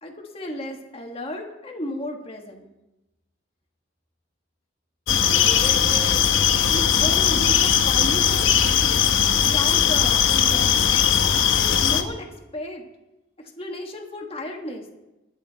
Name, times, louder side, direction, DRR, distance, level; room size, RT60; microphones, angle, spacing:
voice 1, 0.0-2.7 5.3-6.2 6.7-9.0 9.4-10.9 11.5-12.8 13.4-14.9, left 1 dB, 30° left, 1 dB, 1.4 m, -34 dB
sound 1, 5.1-12.0, left 8 dB, 70° left, 0.9 m, -19 dB
20.5 x 8.1 x 4.1 m, 0.98 s
head